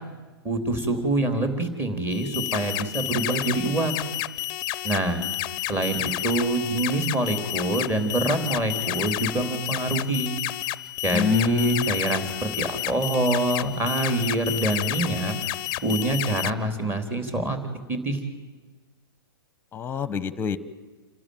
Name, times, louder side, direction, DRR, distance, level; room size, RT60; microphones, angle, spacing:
voice 1, 0.4-3.9 4.8-5.2 5.7-10.3 11.0-15.3 15.8-17.6 17.9-18.2, right 2 dB, 15° right, 6 dB, 3.2 m, -25 dB
sound 1, 2.1-16.5, left 16 dB, 35° left, 0.6 m, -31 dB
voice 2, 11.1-11.9 19.7-20.6, left 7 dB, 15° left, 17 dB, 1.1 m, -25 dB
28.0 x 12.5 x 9.4 m, 1.3 s
hypercardioid pair, 115°, 13 cm